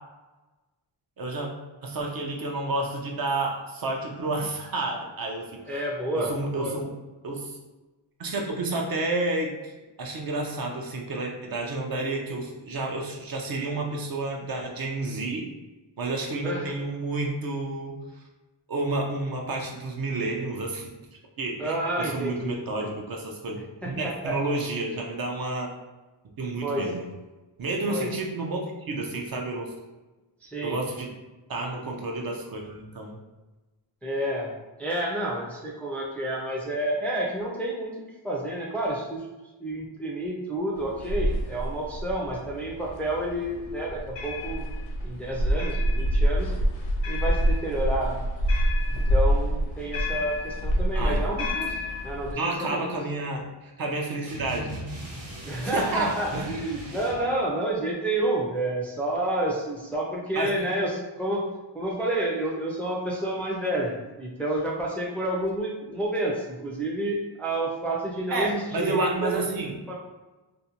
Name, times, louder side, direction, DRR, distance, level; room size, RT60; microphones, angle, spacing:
voice 1, 1.2-1.5 1.8-5.6 6.1-6.9 7.2-7.5 8.2-9.7 10.0-15.5 16.0-18.0 18.7-20.9 21.4-23.6 23.8-25.7 26.4-27.0 27.6-28.6 28.9-29.7 30.6-31.1 31.5-33.2 51.0-51.2 52.4-54.8 55.6-56.5 60.4-60.5 68.3-69.8, right 2 dB, 50° right, 0 dB, 0.6 m, -30 dB
voice 2, 5.7-6.7 16.4-16.7 21.6-22.6 23.8-24.4 26.6-26.9 27.9-28.1 30.4-30.8 34.0-34.5 34.8-37.9 38.2-39.3 39.6-44.7 45.0-46.6 47.1-48.2 48.9-53.0 55.4-61.5 61.7-69.4 69.9-70.0, right 1 dB, 5° left, -3 dB, 0.4 m, -29 dB
sound 1, 40.8-52.3, equal, 70° left, 0.6 m, -26 dB
sound 2, 54.2-57.3, right 1 dB, 80° right, 0.9 m, -39 dB
2.6 x 2.1 x 2.8 m, 1.2 s
cardioid pair, 90°, 46 cm